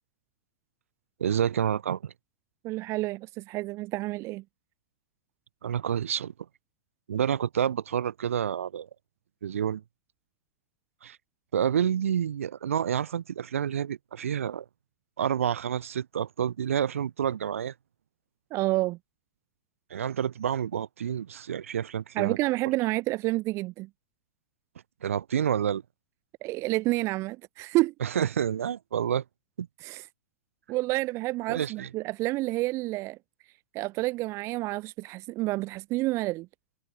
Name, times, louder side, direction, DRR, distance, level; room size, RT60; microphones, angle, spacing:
voice 1, 1.2-2.1 5.6-6.3 7.1-8.9 9.4-9.8 11.0-11.2 11.5-14.6 15.2-17.7 19.9-22.4 25.0-25.8 28.0-29.2 29.6-29.7 31.5-31.9, right 9 dB, 80° right, 6.8 m, -28 dB
voice 2, 2.6-4.4 18.5-19.0 22.2-23.9 26.4-27.9 29.8-30.1 30.7-33.2 33.7-36.5, right 20 dB, 40° right, 1.8 m, -29 dB
hypercardioid pair, 115°, 7 cm